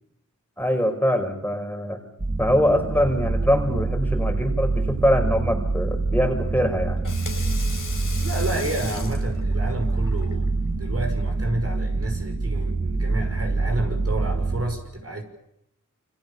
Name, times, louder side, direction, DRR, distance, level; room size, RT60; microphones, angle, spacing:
voice 1, 0.6-2.0 2.4-7.0, equal, 5° left, 5.1 m, -23 dB
sound 1, 2.2-14.7, right 3 dB, 25° right, 3.1 m, -26 dB
Water tap faucet / Sink (filling or washing), 6.8-12.3, left 4 dB, 85° left, 4.8 m, -39 dB
voice 2, 8.2-15.2, right 1 dB, 50° right, 6.2 m, -30 dB
29.0 x 25.5 x 7.1 m
wide cardioid pair, 80°, 31 cm